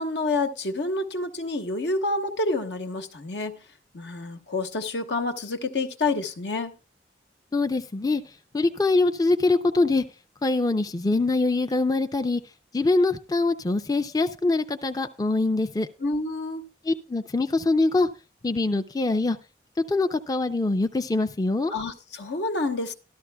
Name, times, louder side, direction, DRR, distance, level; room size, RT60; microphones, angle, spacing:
voice 1, 0.0-3.6 3.9-6.7 16.0-16.7 21.7-22.9, left 2 dB, 80° left, 1.1 m, -28 dB
voice 2, 7.5-10.0 10.4-12.4 12.7-15.9 16.9-18.1 18.4-19.4 19.8-21.7, left 2 dB, 20° left, 0.4 m, -24 dB
13.5 x 12.0 x 2.3 m
head